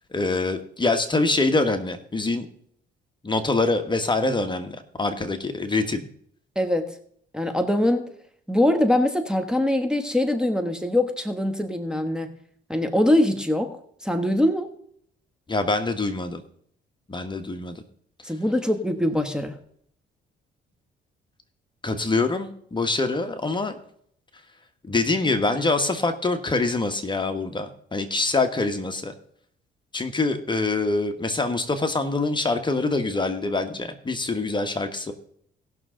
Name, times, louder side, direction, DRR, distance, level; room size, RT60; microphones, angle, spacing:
voice 1, 0.1-2.5 3.2-6.1 15.5-16.4 17.1-17.8 21.8-23.8 24.9-29.1 29.9-35.1, left 3 dB, 25° left, 7 dB, 1.3 m, -25 dB
voice 2, 6.5-7.0 7.3-8.1 8.5-12.3 12.7-13.8 14.0-14.7 18.2-19.6, left 1 dB, 5° right, 4 dB, 1.2 m, -23 dB
18.5 x 6.2 x 3.8 m, 0.65 s
cardioid pair, 90°, 20 cm